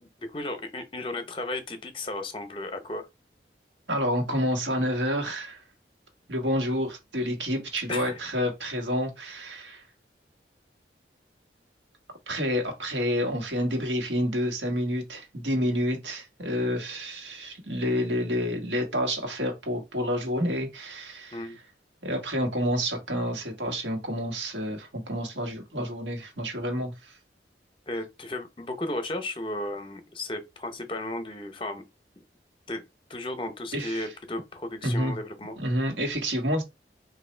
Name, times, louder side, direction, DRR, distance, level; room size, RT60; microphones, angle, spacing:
voice 1, 0.0-3.1 7.9-8.2 21.3-21.6 27.9-31.8 32.7-32.8 33.1-35.6, left 1 dB, 30° left, 0.7 m, -34 dB
voice 2, 3.9-5.6 6.3-9.8 12.3-21.6 22.0-27.2 33.7-34.1 34.8-35.2 35.6-36.6, equal, 85° right, 1.3 m, -29 dB
3.0 x 2.6 x 4.3 m
head